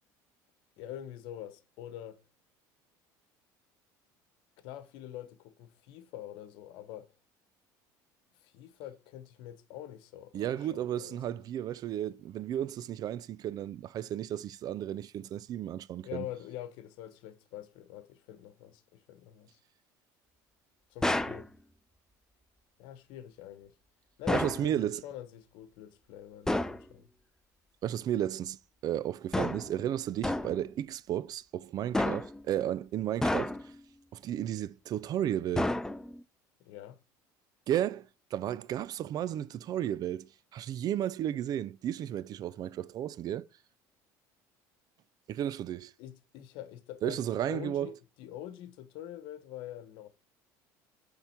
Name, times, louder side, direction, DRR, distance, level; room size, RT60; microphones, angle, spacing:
voice 1, 0.8-2.2 4.6-7.1 8.4-11.4 16.0-19.6 20.9-21.5 22.8-23.7 24.2-27.1 36.6-37.0 46.0-50.1, left 12 dB, 75° left, 1.0 m, -45 dB
voice 2, 10.3-16.2 24.3-25.0 27.8-28.6 28.8-33.5 34.1-35.7 37.7-43.5 45.3-45.9 47.0-47.9, right 11 dB, 50° right, 0.4 m, -33 dB
sound 1, 21.0-21.5 24.3-24.7 26.5-26.8 29.3-29.7 30.2-30.6 31.9-32.4 33.2-33.8 35.6-36.2, left 1 dB, 5° left, 0.6 m, -30 dB
10.0 x 3.8 x 5.7 m
supercardioid pair, 95°, 9 cm